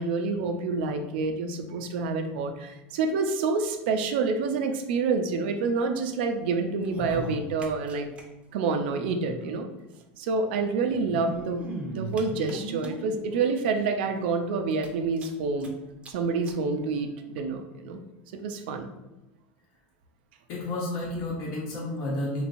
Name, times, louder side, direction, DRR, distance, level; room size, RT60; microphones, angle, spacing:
voice 1, 0.0-8.1 8.5-9.7 10.2-15.7 16.1-18.0 18.3-18.9, right 4 dB, 80° right, 5 dB, 0.4 m, -28 dB
sound 1, 6.8-8.2 8.5-8.6 8.8-8.9 9.9-10.0 10.9-13.2 13.8-13.9 14.2-14.3 14.7-15.7 16.0-16.1 16.4-16.6 17.4-17.5, right 2 dB, 20° right, 0.6 m, -37 dB
voice 2, 20.5-22.4, left 2 dB, 60° left, -6 dB, 0.9 m, -31 dB
3.2 x 3.1 x 2.6 m, 1.0 s
supercardioid pair, 130°, 5 cm